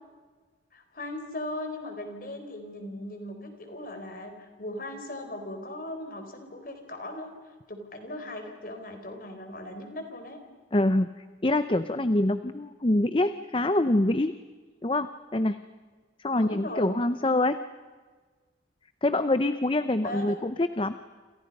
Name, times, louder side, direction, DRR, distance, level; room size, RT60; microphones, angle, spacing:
voice 1, 0.7-7.3 7.7-10.4 16.3-16.9 20.0-20.4, left 1 dB, 50° left, 5 dB, 4.0 m, -38 dB
voice 2, 10.7-11.1 11.4-14.3 14.8-15.6 16.2-17.6 19.0-21.0, left 1 dB, 30° left, 11 dB, 0.6 m, -25 dB
28.5 x 28.0 x 5.4 m, 1.4 s
head